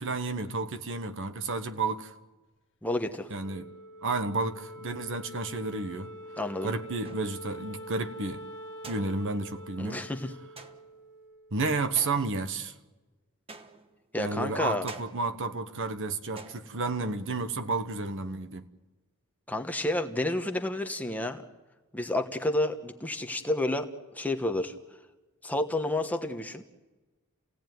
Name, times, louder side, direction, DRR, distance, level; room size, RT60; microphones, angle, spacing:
voice 1, 0.0-2.1 3.3-3.7 4.0-6.1 6.6-8.4 8.8-10.0 11.5-12.7 14.2-18.7, right 3 dB, 60° right, 1.2 m, -31 dB
voice 2, 2.8-3.3 6.4-6.7 9.8-10.4 14.1-14.8 19.5-21.4 21.9-23.9 24.1-24.7 25.4-26.6, left 1 dB, 5° left, 1.2 m, -30 dB
Wind instrument woodwind instrument, 3.4-12.0, equal, 55° left, 1.7 m, -45 dB
sound 1, 7.0-7.6 8.8-9.6 10.6-11.1 12.0-12.7 13.5-14.1 14.9-15.5 16.4-17.0, right 3 dB, 25° right, 1.2 m, -48 dB
30.0 x 17.0 x 9.3 m
head